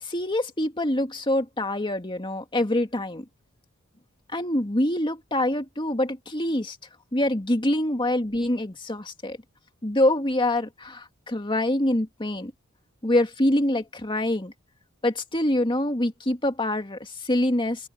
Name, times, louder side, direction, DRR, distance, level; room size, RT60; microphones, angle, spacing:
voice 1, 0.0-3.3 4.3-6.8 7.1-9.4 9.8-12.5 13.0-14.5 15.0-17.9, left 1 dB, 25° left, 2.2 m, -25 dB
open air
head